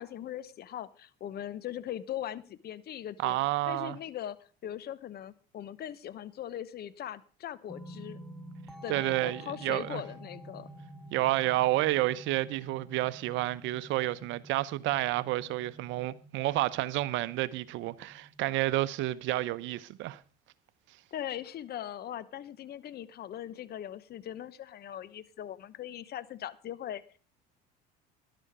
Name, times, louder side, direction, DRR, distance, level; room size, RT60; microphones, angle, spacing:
voice 1, 0.0-3.4 3.7-8.2 8.8-10.7 21.1-27.2, left 11 dB, 50° left, 1.0 m, -40 dB
voice 2, 3.2-4.0 8.9-10.0 11.1-20.2, right 16 dB, 65° right, 0.9 m, -30 dB
sound 1, 7.7-20.3, right 1 dB, ahead, 2.0 m, -50 dB
13.0 x 11.5 x 4.9 m
supercardioid pair, 85°, 21 cm